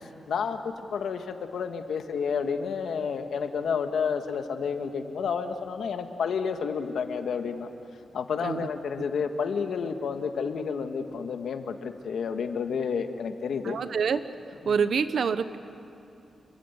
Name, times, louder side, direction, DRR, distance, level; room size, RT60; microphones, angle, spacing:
voice 1, 0.3-7.7 8.1-13.8 14.6-14.8, left 6 dB, 80° left, 6 dB, 1.6 m, -30 dB
voice 2, 13.6-14.2 14.6-15.6, right 6 dB, 60° right, 12 dB, 1.0 m, -26 dB
28.0 x 23.5 x 8.2 m, 2.6 s
wide cardioid pair, 175°, 0 cm